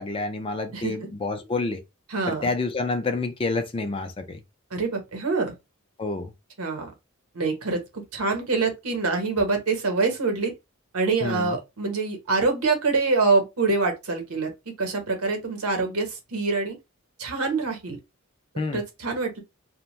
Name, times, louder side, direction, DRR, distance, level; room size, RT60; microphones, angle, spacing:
voice 1, 0.0-1.8 2.3-4.4 6.0-6.3 11.2-11.6 18.6-18.8, left 3 dB, 25° left, 0.4 m, -28 dB
voice 2, 2.1-2.5 4.7-5.5 6.6-6.9 7.3-10.5 10.9-14.5 14.8-16.7 17.2-18.0 18.7-19.4, right 3 dB, 85° right, 0.9 m, -25 dB
2.5 x 2.1 x 3.0 m
head